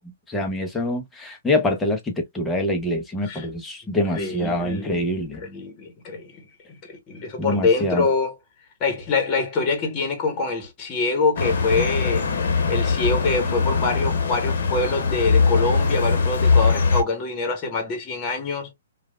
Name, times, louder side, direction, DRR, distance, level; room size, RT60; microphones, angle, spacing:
voice 1, 0.3-5.4 7.4-8.1, left 1 dB, 10° left, 0.8 m, -25 dB
voice 2, 4.1-5.0 5.4-6.4 6.8-8.3 8.8-12.3 12.7-18.7, left 3 dB, 30° left, 1.2 m, -25 dB
sound 1, 11.4-17.0, left 4 dB, 65° left, 1.0 m, -21 dB
3.2 x 2.4 x 2.3 m
hypercardioid pair, 130°, 0 cm